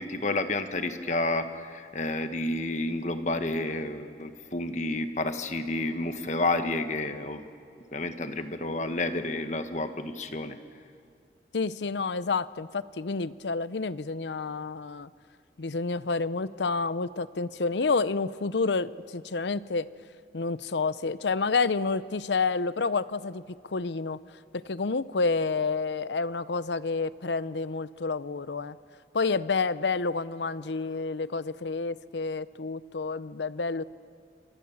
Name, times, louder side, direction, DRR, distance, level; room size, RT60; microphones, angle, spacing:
voice 1, 0.0-7.4 7.9-10.6, left 2 dB, 40° left, 8 dB, 1.4 m, -30 dB
voice 2, 11.5-15.1 15.6-19.9 20.3-24.2 24.5-28.8 29.1-33.8, left 4 dB, 80° left, 16 dB, 0.7 m, -29 dB
28.5 x 25.0 x 7.2 m, 2.2 s
head